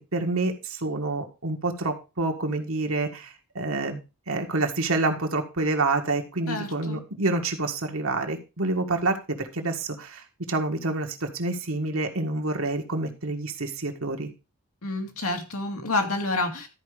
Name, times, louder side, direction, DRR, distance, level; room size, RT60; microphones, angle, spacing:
voice 1, 0.1-4.0 4.3-14.3, right 2 dB, 70° right, 3 dB, 1.8 m, -28 dB
voice 2, 6.5-7.0 14.8-16.7, left 2 dB, 85° left, 3 dB, 2.3 m, -28 dB
13.0 x 5.0 x 5.0 m, 0.30 s
head